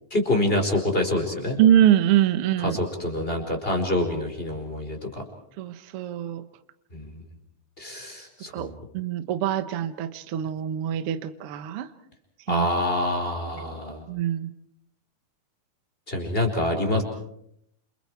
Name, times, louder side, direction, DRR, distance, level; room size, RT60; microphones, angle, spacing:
voice 1, 0.1-1.6 2.6-5.2 6.9-7.2 7.8-8.8 12.5-14.0 16.1-17.0, left 1 dB, 15° left, 4 dB, 4.5 m, -26 dB
voice 2, 1.6-2.8 5.6-6.4 8.5-11.9 12.5-12.7 14.1-14.5, right 11 dB, 90° right, 11 dB, 1.2 m, -23 dB
29.5 x 28.5 x 4.7 m, 0.72 s
omnidirectional pair, 4.3 m